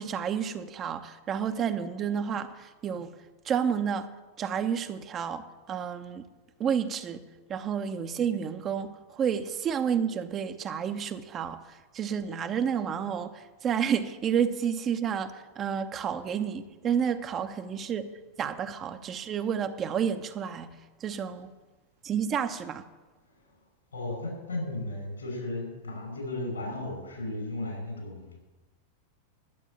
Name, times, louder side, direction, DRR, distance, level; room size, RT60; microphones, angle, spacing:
voice 1, 0.0-3.1 3.4-4.1 4.4-6.2 6.6-7.2 7.5-18.1 18.4-20.7 21.0-21.5 22.0-22.8, right 7 dB, 30° right, 0.8 m, -30 dB
voice 2, 23.9-28.4, left 2 dB, 75° left, 6.0 m, -35 dB
12.0 x 8.0 x 8.8 m
figure-of-eight pair, 90°, 0 cm